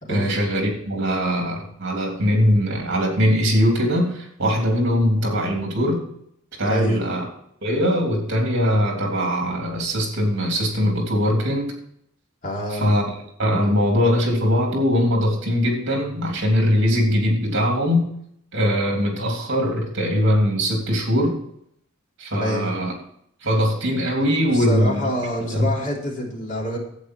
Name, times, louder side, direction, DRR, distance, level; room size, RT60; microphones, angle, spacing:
voice 1, 0.1-6.0 6.6-7.2 7.6-11.7 12.7-18.1 18.5-21.4 22.2-22.9 23.4-25.1 25.5-25.7, equal, 60° right, 1 dB, 3.2 m, -21 dB
voice 2, 6.7-7.1 12.4-12.9 22.3-22.7 24.5-26.8, equal, 40° left, -2 dB, 3.4 m, -26 dB
11.5 x 8.7 x 4.7 m, 0.69 s
head